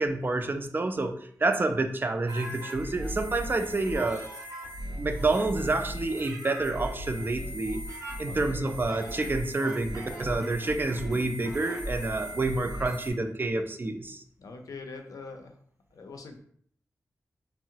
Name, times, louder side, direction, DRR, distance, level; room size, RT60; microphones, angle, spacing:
voice 1, 0.0-4.2 5.0-7.8 8.2-14.2, right 2 dB, 35° right, 7 dB, 0.4 m, -28 dB
sound 1, 2.3-13.1, equal, 75° right, 0.9 m, -38 dB
voice 2, 8.2-8.6 14.4-15.6 15.9-16.4, left 3 dB, 75° left, 4 dB, 0.5 m, -43 dB
3.5 x 2.0 x 2.7 m, 0.62 s
cardioid pair, 55°, 6 cm